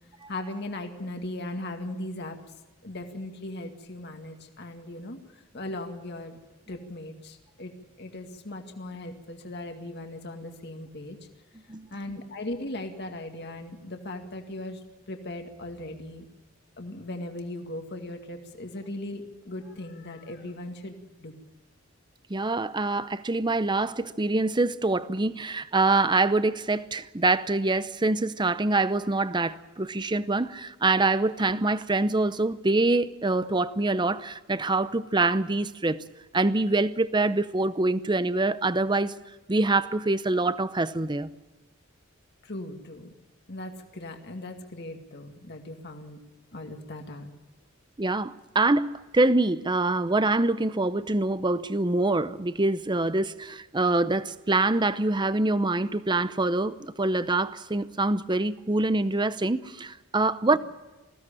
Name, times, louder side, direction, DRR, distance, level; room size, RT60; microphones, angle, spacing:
voice 1, 0.3-2.4 2.8-6.4 6.7-7.7 8.0-11.2 11.9-14.8 15.1-16.2 16.8-21.3 42.4-43.1 43.5-46.2 46.5-47.3, left 1 dB, 50° left, 2.1 m, -38 dB
voice 2, 22.3-36.0 36.3-39.1 39.5-41.3 48.0-60.6, right 2 dB, 20° right, 0.7 m, -25 dB
20.5 x 16.0 x 8.9 m
head